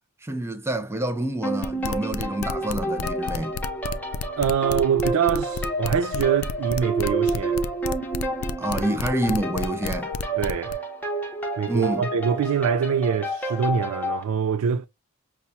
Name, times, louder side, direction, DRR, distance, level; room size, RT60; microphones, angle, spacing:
voice 1, 0.2-3.6 8.6-10.1 11.7-12.1, right 1 dB, 10° right, 0.4 m, -28 dB
sound 1, 1.4-14.2, right 2 dB, 10° left, 0.8 m, -29 dB
sound 2, 1.6-10.7, left 5 dB, 65° left, 0.3 m, -31 dB
voice 2, 4.4-7.7 8.8-8.9 10.4-10.8 11.6-14.9, right 7 dB, 80° right, 0.3 m, -24 dB
5.7 x 2.2 x 2.6 m
head